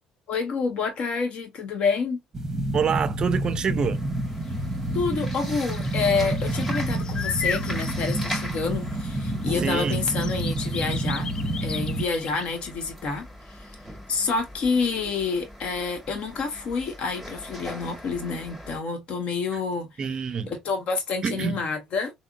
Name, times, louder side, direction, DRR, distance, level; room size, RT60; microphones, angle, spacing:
voice 1, 0.3-2.2 4.9-11.3 11.6-13.7 14.1-19.9 20.5-22.1, left 4 dB, 60° left, 0.9 m, -28 dB
sound 1, 2.3-12.0, right 1 dB, 20° right, 0.8 m, -28 dB
voice 2, 2.7-4.0 9.6-10.1 20.0-20.5 21.2-21.6, right 6 dB, 40° right, 0.4 m, -26 dB
sound 2, 3.9-18.8, equal, 5° left, 1.5 m, -41 dB
sound 3, 4.5-4.6 5.3-9.1 9.4-12.5, left 6 dB, 40° left, 0.3 m, -37 dB
3.5 x 2.0 x 2.2 m
supercardioid pair, 70°, 2 cm